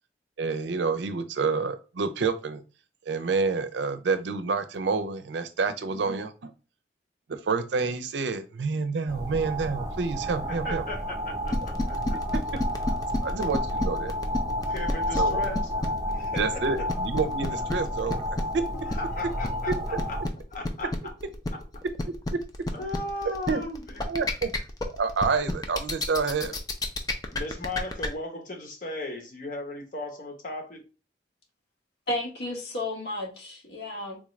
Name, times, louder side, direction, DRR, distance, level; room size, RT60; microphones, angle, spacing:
voice 1, 0.4-2.6 3.1-6.5 7.3-10.8 13.2-14.1 15.2-15.4 16.3-18.2 18.5-18.6 23.2-23.6 24.1-24.5 25.0-26.6, right 4 dB, 80° right, 0.5 m, -28 dB
sound 1, 9.1-20.3, left 1 dB, 20° right, 0.6 m, -31 dB
voice 2, 10.5-12.2 14.7-15.7 16.1-16.6 18.9-19.7 20.1-20.2 20.5-21.1 21.5-21.6 22.7-24.3 27.3-30.8, left 2 dB, 45° left, 0.9 m, -36 dB
sound 2, 11.5-28.1, left 2 dB, 20° left, 0.4 m, -30 dB
voice 3, 32.1-34.2, left 1 dB, 70° left, 1.0 m, -32 dB
3.6 x 2.4 x 3.1 m
head